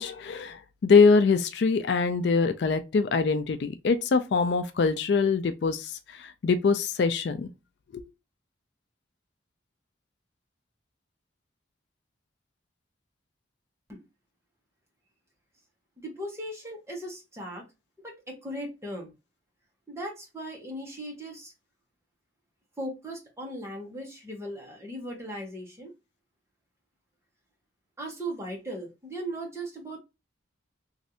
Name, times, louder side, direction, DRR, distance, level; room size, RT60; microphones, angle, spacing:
voice 1, 0.0-7.5 7.9-8.0, left 4 dB, 60° left, 0.4 m, -23 dB
voice 2, 16.0-17.6 18.0-19.1 19.9-21.5 22.8-25.9 28.0-30.0, right 1 dB, 15° right, 1.0 m, -38 dB
3.1 x 2.6 x 2.7 m
head